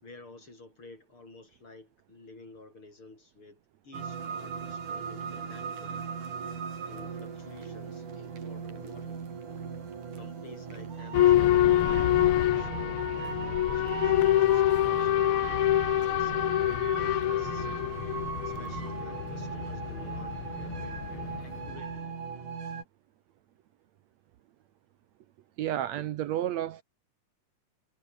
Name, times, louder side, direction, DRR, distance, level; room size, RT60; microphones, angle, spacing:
voice 1, 0.0-6.1 6.9-9.2 10.2-15.7 16.1-17.9 18.4-22.4, left 3 dB, 40° left, 7.4 m, -52 dB
sound 1, 3.9-22.8, right 6 dB, 90° right, 5.4 m, -38 dB
Boat Water vehicle / Alarm, 11.1-21.8, left 13 dB, 85° left, 1.2 m, -26 dB
voice 2, 25.6-26.8, right 12 dB, 70° right, 2.0 m, -31 dB
omnidirectional pair, 3.5 m